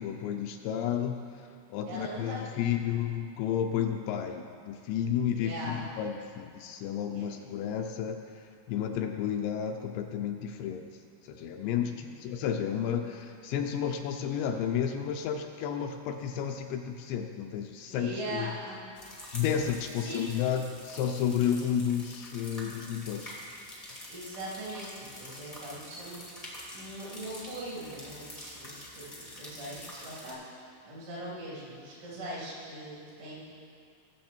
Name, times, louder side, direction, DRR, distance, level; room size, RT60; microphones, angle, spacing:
voice 1, 0.0-10.9 11.2-18.6 19.3-23.4, left 8 dB, 80° left, 4 dB, 2.6 m, -32 dB
voice 2, 1.9-2.6 5.3-5.8 7.1-7.3 11.9-12.1 17.9-18.8 20.0-20.2 24.1-30.4 30.9-33.4, right 1 dB, 80° right, -7 dB, 5.6 m, -41 dB
sound 1, 18.9-30.3, left 1 dB, 55° left, 0.4 m, -46 dB
19.5 x 7.2 x 4.4 m, 2.4 s
omnidirectional pair, 5.3 m